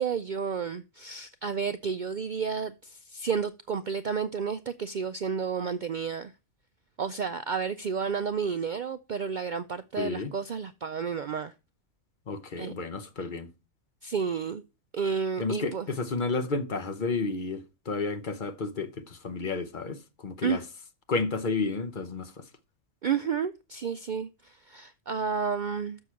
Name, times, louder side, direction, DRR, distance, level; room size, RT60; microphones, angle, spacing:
voice 1, 0.0-6.3 7.0-11.5 12.6-12.7 13.2-13.3 14.0-14.6 14.9-15.9 20.4-20.6 23.0-26.0, right 6 dB, 80° right, 0.4 m, -31 dB
voice 2, 10.0-10.3 12.3-13.5 15.4-20.0 20.2-20.6 21.1-22.3, left 4 dB, 40° left, 0.9 m, -31 dB
6.7 x 6.2 x 5.7 m
omnidirectional pair, 1.4 m